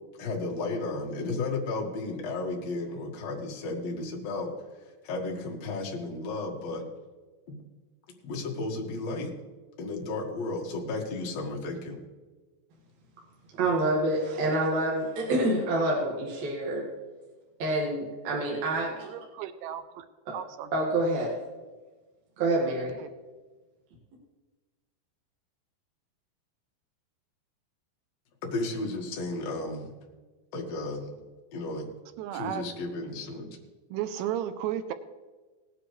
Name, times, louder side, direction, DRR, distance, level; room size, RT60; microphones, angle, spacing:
voice 1, 0.2-4.5 5.0-6.8 8.2-9.3 9.8-12.0 28.4-29.9 30.5-31.1 31.5-31.9 32.3-33.6, left 2 dB, 55° left, 0 dB, 2.0 m, -33 dB
voice 2, 13.5-16.9 17.6-19.1 20.3-20.4 20.7-21.4 22.4-23.0, right 1 dB, 50° right, -3 dB, 2.5 m, -27 dB
voice 3, 19.1-20.1 20.3-20.7 23.0-23.1 32.2-32.7 33.9-34.9, right 11 dB, 85° right, 11 dB, 2.7 m, -34 dB
18.5 x 10.0 x 3.2 m, 1.3 s
omnidirectional pair, 5.1 m